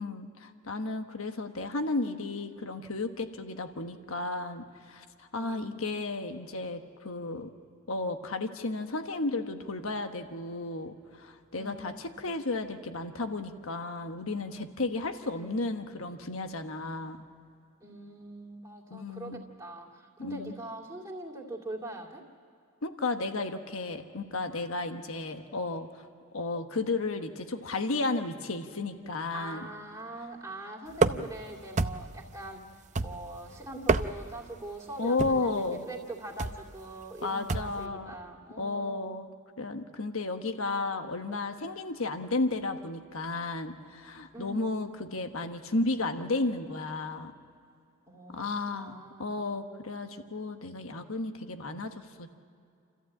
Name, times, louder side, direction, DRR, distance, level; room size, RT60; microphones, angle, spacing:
voice 1, 0.0-7.5 7.9-17.2 18.9-19.4 20.2-20.5 22.8-26.1 26.3-29.7 35.0-35.8 37.2-38.1 38.6-39.3 39.6-47.3 48.3-52.3, left 3 dB, 85° left, 7 dB, 1.3 m, -33 dB
voice 2, 5.3-6.0 11.5-12.2 15.3-15.8 17.8-22.3 29.3-32.6 33.0-39.0 44.3-44.9 48.1-48.4 48.7-49.5, right 1 dB, 15° right, -2 dB, 2.4 m, -43 dB
sound 1, 31.0-31.4 31.8-32.2 33.0-33.4 33.7-34.4 35.2-35.5 36.4-36.7 37.5-37.8, right 3 dB, 35° right, 0.6 m, -28 dB
28.0 x 14.5 x 8.6 m, 2.4 s
head